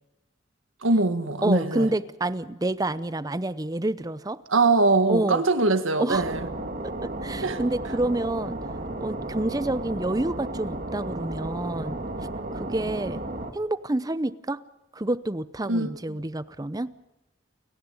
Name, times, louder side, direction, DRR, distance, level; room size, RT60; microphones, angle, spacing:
voice 1, 0.8-1.9 4.5-6.5 7.4-7.6 15.7-15.9, right 3 dB, 90° right, 1.7 m, -22 dB
voice 2, 1.4-4.4 5.1-5.4 6.0-6.3 6.8-8.6 9.0-12.0 12.5-13.2 13.5-14.6 14.9-16.9, right 1 dB, 20° right, 0.7 m, -28 dB
sound 1, 6.1-13.5, right 2 dB, 45° right, 2.0 m, -33 dB
29.5 x 11.0 x 9.6 m
head